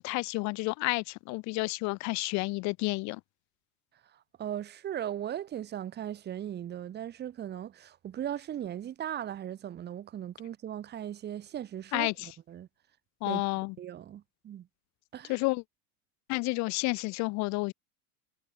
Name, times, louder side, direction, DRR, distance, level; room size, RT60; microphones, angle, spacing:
voice 1, 0.0-3.2 11.9-12.3 13.2-13.7 15.3-15.6 16.3-17.7, left 25 dB, 40° left, 3.1 m, -30 dB
voice 2, 4.4-12.7 13.3-13.4 13.8-14.7 15.1-15.3, right 10 dB, 25° right, 7.4 m, -38 dB
supercardioid pair, 180°, 43 cm